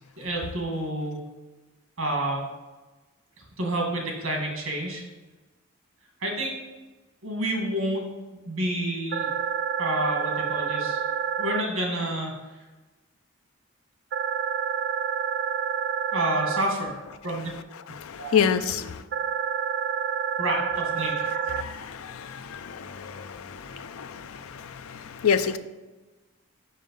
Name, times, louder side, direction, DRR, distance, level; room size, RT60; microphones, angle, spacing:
voice 1, 0.2-1.2 2.0-2.5 3.4-5.0 6.2-6.6 7.2-8.1 8.4-9.3 9.8-11.0 11.4-12.3 16.1-17.5 17.9-18.4 20.4-21.2, right 1 dB, 75° right, 1 dB, 1.8 m, -29 dB
sound 1, 9.1-11.6 14.1-16.6 19.1-21.6, right 8 dB, 50° right, 0.3 m, -28 dB
voice 2, 18.0-19.0 21.6-25.6, left 7 dB, 85° left, 11 dB, 0.4 m, -28 dB
5.5 x 5.2 x 5.4 m, 1.2 s
head